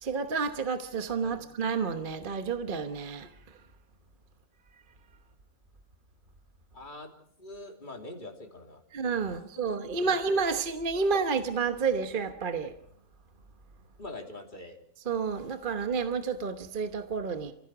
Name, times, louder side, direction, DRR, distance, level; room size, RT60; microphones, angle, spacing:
voice 1, 0.0-3.3 8.9-12.7 15.1-17.5, right 5 dB, 40° right, 1.2 m, -30 dB
voice 2, 1.2-1.5 6.7-7.1 7.4-8.8 9.2-10.1 10.9-11.1 14.0-14.8, left 2 dB, 30° left, 3.3 m, -44 dB
29.0 x 16.0 x 6.0 m
omnidirectional pair, 1.5 m